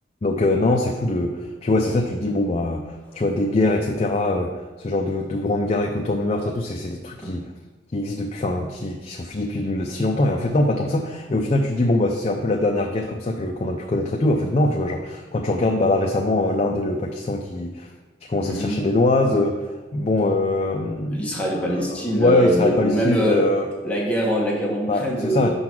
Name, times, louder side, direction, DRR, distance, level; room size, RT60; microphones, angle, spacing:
voice 1, 0.2-4.5 4.8-7.4 7.9-17.9 18.3-19.6 19.9-21.3 21.5-23.7 24.9-25.5, left 2 dB, 35° left, 1 dB, 0.5 m, -22 dB
voice 2, 18.4-18.8 21.1-23.5 23.8-25.5, equal, 10° left, -4 dB, 1.2 m, -23 dB
5.7 x 4.0 x 6.0 m, 1.2 s
head